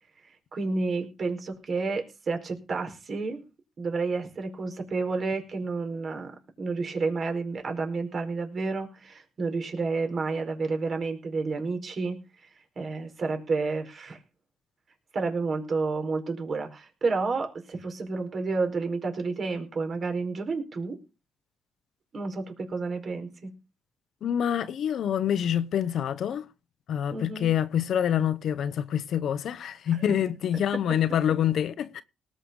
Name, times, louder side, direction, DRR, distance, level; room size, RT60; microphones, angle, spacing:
voice 1, 0.5-3.4 3.8-12.2 12.7-14.2 15.1-21.0 22.1-23.5 27.1-27.5, right 3 dB, 45° right, 5.0 m, -30 dB
voice 2, 24.2-26.4 26.9-32.0, left 9 dB, 65° left, 0.9 m, -26 dB
19.0 x 6.8 x 5.5 m
cardioid pair, 90°, 0 cm